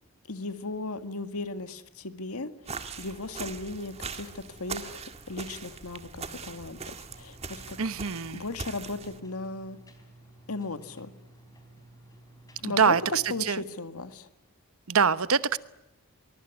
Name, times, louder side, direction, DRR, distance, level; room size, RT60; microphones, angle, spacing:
voice 1, 0.3-7.8 8.3-9.8 10.5-11.1 12.6-13.0 13.3-14.3, left 3 dB, 85° left, 10 dB, 2.0 m, -37 dB
sound 1, 2.7-9.2, right 5 dB, 30° right, 1.6 m, -41 dB
sound 2, 7.1-13.5, right 1 dB, 15° left, 4.1 m, -53 dB
voice 2, 7.8-8.4 12.6-13.6 14.9-15.6, right 6 dB, 75° right, 15 dB, 1.0 m, -24 dB
23.5 x 22.5 x 9.6 m, 0.89 s
head